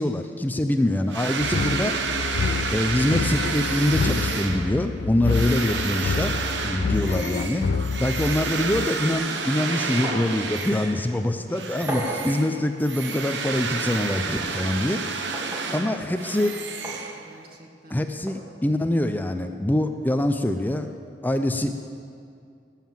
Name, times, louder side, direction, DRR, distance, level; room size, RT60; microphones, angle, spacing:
voice 1, 0.0-2.2 2.7-6.3 6.6-7.7 8.0-15.0 15.7-16.6 17.9-20.9 21.2-21.8, left 1 dB, 10° left, 7 dB, 0.5 m, -24 dB
sound 1, 1.1-11.2 11.5-17.5, right 4 dB, 75° right, 1.0 m, -30 dB
sound 2, 1.4-8.9, left 5 dB, 70° left, 0.4 m, -28 dB
sound 3, 10.0-10.4 10.7-10.8 11.9-12.3 13.5-13.6 15.3-15.7 16.8-17.0 18.3-18.4, right 1 dB, 15° right, 2.1 m, -32 dB
voice 2, 15.5-16.9 17.2-18.0, equal, 60° right, 1 dB, 2.0 m, -46 dB
18.5 x 7.4 x 7.4 m, 2.3 s
head